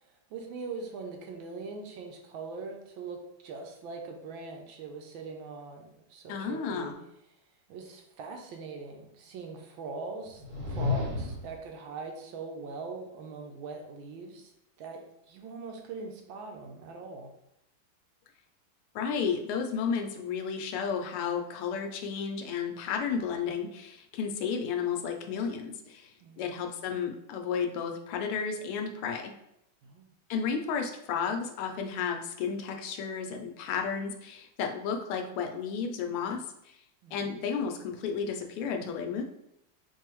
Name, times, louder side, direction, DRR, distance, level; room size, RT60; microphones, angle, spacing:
voice 1, 0.0-6.9 7.7-10.4 10.7-14.5 14.8-17.3 26.2-26.6 29.8-30.1 37.0-37.4, right 4 dB, 75° right, 3 dB, 1.3 m, -42 dB
voice 2, 6.3-7.0 18.9-29.3 30.3-36.8 37.1-39.2, left 6 dB, 85° left, 4 dB, 1.5 m, -32 dB
sound 1, 10.3-11.6, left 3 dB, 55° right, 0.9 m, -32 dB
4.7 x 2.7 x 2.9 m, 0.80 s
omnidirectional pair, 2.3 m